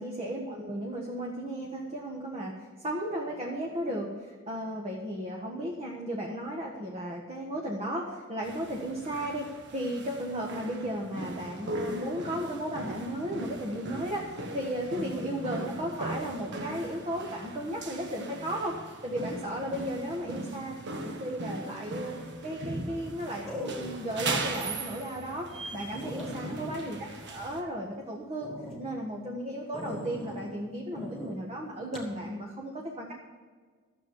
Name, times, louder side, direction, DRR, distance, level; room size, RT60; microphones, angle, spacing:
voice 1, 0.0-2.5 2.8-18.7 19.0-20.7 21.0-22.1 22.4-25.5 25.7-27.0 27.3-28.5 28.8-33.1, equal, 30° right, -1 dB, 1.4 m, -35 dB
sound 1, 8.4-27.6, right 2 dB, 55° right, 1.3 m, -39 dB
sound 2, 23.4-24.2 24.7-24.8 25.3-25.4 25.6-25.7 25.9-28.0 28.4-28.8 29.7-30.5 30.9-31.4 31.9-32.1, left 1 dB, ahead, 2.4 m, -40 dB
13.0 x 7.4 x 7.1 m, 1.5 s
head